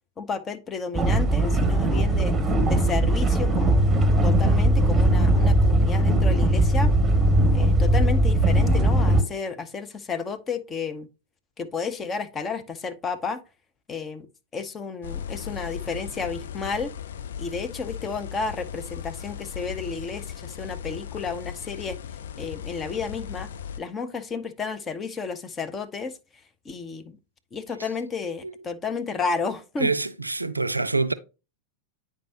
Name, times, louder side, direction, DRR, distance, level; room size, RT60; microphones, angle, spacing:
voice 1, 0.2-2.4 2.7-3.9 4.2-6.9 7.5-11.1 11.6-13.4 13.9-14.3 14.5-16.9 17.4-22.0 22.4-23.5 23.8-26.1 26.6-27.2 27.5-29.9, left 5 dB, 20° left, 0.8 m, -32 dB
sound 1, 0.9-9.2, right 1 dB, 15° right, 1.0 m, -20 dB
sound 2, 15.0-23.8, left 8 dB, 60° left, 0.6 m, -37 dB
voice 2, 29.8-31.1, right 3 dB, 85° right, 0.4 m, -25 dB
9.0 x 4.8 x 2.9 m
figure-of-eight pair, 90°, 0 cm